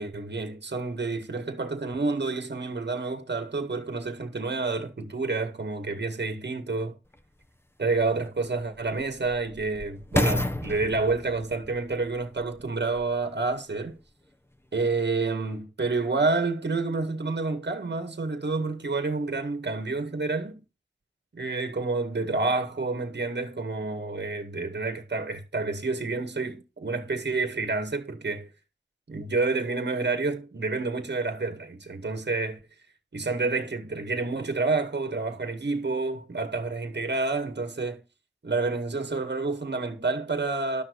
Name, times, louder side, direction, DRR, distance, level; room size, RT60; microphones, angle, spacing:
voice 1, 0.0-7.0 7.8-14.0 14.7-20.6 21.3-28.5 29.1-32.6 33.1-38.0 38.4-40.8, right 3 dB, 65° right, 2.1 m, -29 dB
sound 1, 7.1-7.2 7.9-13.2 13.9-14.0, left 1 dB, 10° left, 1.1 m, -32 dB
12.0 x 6.5 x 4.8 m
wide cardioid pair, 55°, 19 cm